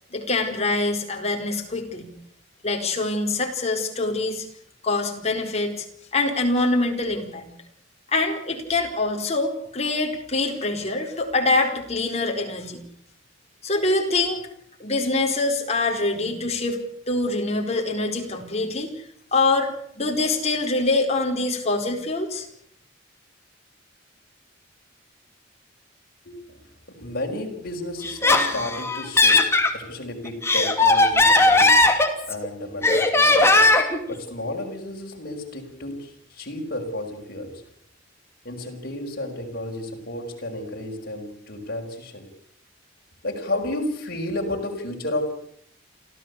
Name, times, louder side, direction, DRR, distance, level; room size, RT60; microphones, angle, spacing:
voice 1, 0.1-2.1 2.6-4.5 4.8-5.9 6.1-7.5 8.1-12.8 13.6-14.4 14.8-16.8 17.1-19.0 19.3-22.5, left 2 dB, 35° left, 3 dB, 4.6 m, -24 dB
voice 2, 26.2-26.6 26.9-31.8 32.2-33.7 34.1-37.6 38.4-42.3 43.2-45.3, left 1 dB, 55° left, 0 dB, 5.5 m, -32 dB
Laughter, 28.0-29.7 30.3-32.5 32.8-34.0, left 2 dB, 15° left, 2.8 m, -18 dB
28.0 x 14.5 x 8.4 m, 0.67 s
head